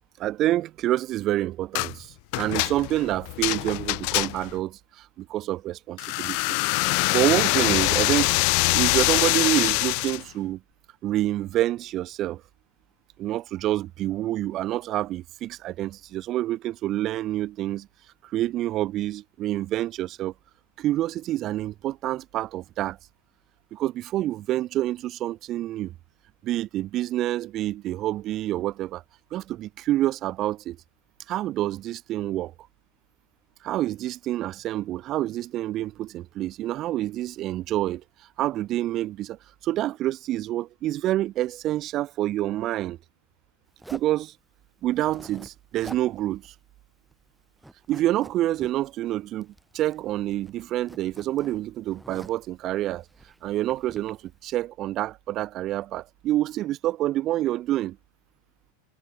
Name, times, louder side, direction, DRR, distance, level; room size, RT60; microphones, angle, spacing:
voice 1, 0.2-8.3 8.7-10.6 11.0-12.4 13.2-17.9 18.2-20.3 20.8-23.0 23.7-25.9 26.4-29.0 29.3-30.8 31.3-32.5 33.6-38.0 38.4-39.4 39.6-43.0 43.9-44.3 44.8-46.5 47.9-53.0 53.4-58.0, right 14 dB, 40° right, 1.8 m, -27 dB
sound 1, 1.7-1.9 2.3-4.6 6.0-10.2, left 40 dB or more, 50° left, 0.4 m, -24 dB
Zipper (clothing), 43.8-44.2 44.9-45.5 45.8-46.1 46.4-46.5 46.9-47.3 47.6-48.7 49.4-50.1 50.3-52.5 53.1-54.1, right 1 dB, 5° right, 2.1 m, -47 dB
figure-of-eight pair, 90°, 0 cm